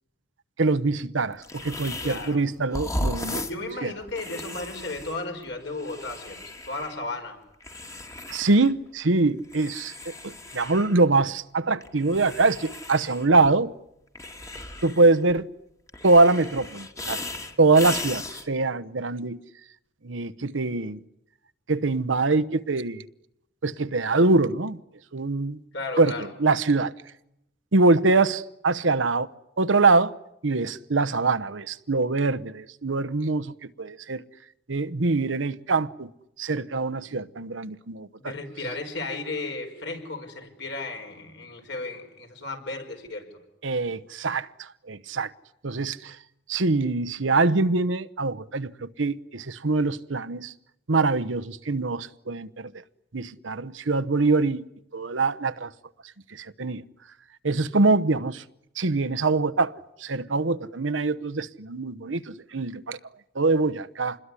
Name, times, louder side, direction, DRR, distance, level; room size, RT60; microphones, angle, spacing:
voice 1, 0.6-3.4 3.8-3.9 8.3-13.7 14.8-15.5 16.0-17.2 17.6-19.4 20.0-21.0 21.7-23.0 23.6-24.8 25.1-25.6 26.0-26.9 27.7-29.3 29.6-30.1 30.4-34.2 34.7-36.1 36.4-38.3 43.6-45.3 45.6-46.2 46.5-50.5 50.9-52.8 53.1-54.6 54.9-55.7 56.3-56.8 57.4-58.4 58.8-59.7 60.0-63.0 63.3-64.2, right 3 dB, 80° right, 1.0 m, -24 dB
sound 1, 1.4-2.4 2.7-7.0 7.6-8.7 9.1-11.0 11.8-13.5 14.2-15.4 15.9-18.5, left 1 dB, 15° left, 1.7 m, -36 dB
voice 2, 2.0-2.4 3.3-7.4 25.7-26.3 38.1-43.3, left 2 dB, 65° left, 5.1 m, -34 dB
27.5 x 21.5 x 9.8 m
head